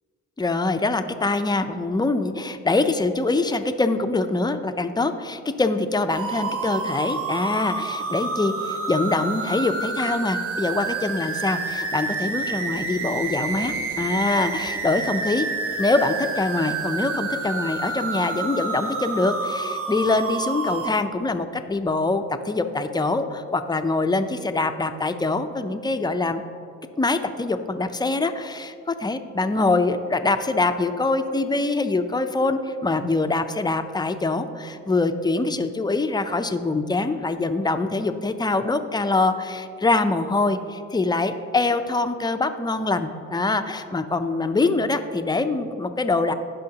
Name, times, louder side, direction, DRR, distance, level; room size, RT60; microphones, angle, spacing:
voice 1, 0.4-15.5 15.8-26.4 27.0-46.3, left 3 dB, 15° left, 8 dB, 0.5 m, -24 dB
sound 1, 6.1-20.9, right 4 dB, 50° right, 1.0 m, -29 dB
16.0 x 5.6 x 2.9 m, 2.4 s
cardioid pair, 90°, 30 cm